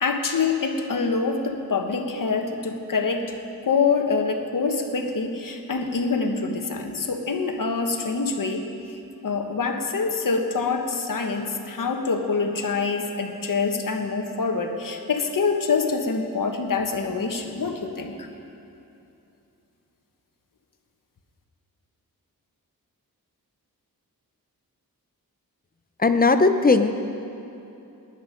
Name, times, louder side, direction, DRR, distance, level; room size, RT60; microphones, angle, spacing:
voice 1, 0.0-3.3 3.6-8.7 9.2-18.3, left 4 dB, 60° left, 4 dB, 1.3 m, -25 dB
voice 2, 26.0-26.9, left 3 dB, 25° left, 8 dB, 0.7 m, -18 dB
18.5 x 11.0 x 5.1 m, 2.8 s
wide cardioid pair, 140°, 36 cm